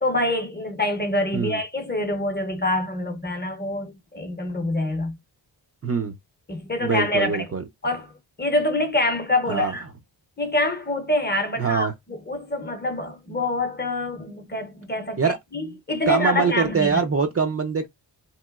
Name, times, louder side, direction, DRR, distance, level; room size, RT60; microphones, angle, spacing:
voice 1, 0.0-5.2 6.5-7.5 7.8-8.1 8.4-9.8 10.4-17.0, left 1 dB, 20° left, 0.6 m, -26 dB
voice 2, 5.8-6.2 6.8-7.6 9.5-9.7 11.6-11.9 15.2-15.7 16.1-17.9, right 5 dB, 35° right, 0.4 m, -24 dB
2.9 x 2.9 x 2.3 m
wide cardioid pair, 135°, 46 cm